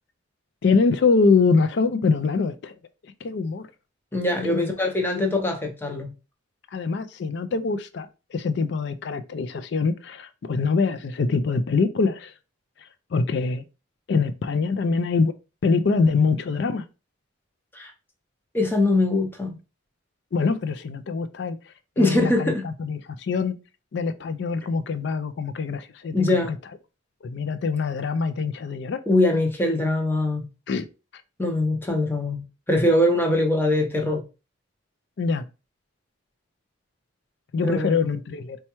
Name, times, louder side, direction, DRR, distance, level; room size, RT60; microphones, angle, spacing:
voice 1, 0.6-2.8 3.2-3.7 4.5-4.7 5.2-5.3 6.7-12.3 13.1-13.6 14.1-15.3 15.6-16.8 20.3-21.6 22.0-23.5 23.9-26.6 27.2-29.0 30.7-30.8 35.2-35.4 37.5-38.6, left 4 dB, 55° left, 0.4 m, -24 dB
voice 2, 4.1-6.1 17.7-17.9 18.5-19.5 22.0-22.6 26.1-26.5 29.1-30.5 31.4-34.2 37.6-38.0, left 1 dB, 10° left, 0.6 m, -22 dB
4.2 x 2.3 x 2.9 m
head